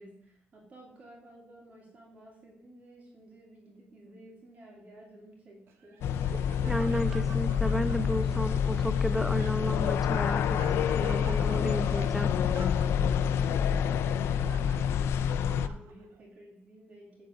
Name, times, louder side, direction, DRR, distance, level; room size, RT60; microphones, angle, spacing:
voice 1, 0.0-6.0 13.3-17.3, right 1 dB, 35° right, -2 dB, 2.1 m, -53 dB
Laughter, 5.7-16.2, right 6 dB, 85° right, 1.1 m, -49 dB
sound 1, 6.0-15.7, left 8 dB, 85° left, 0.4 m, -27 dB
voice 2, 6.6-12.3, equal, 5° right, 11 dB, 0.3 m, -33 dB
8.9 x 3.8 x 6.7 m, 0.69 s
cardioid pair, 160°, 4 cm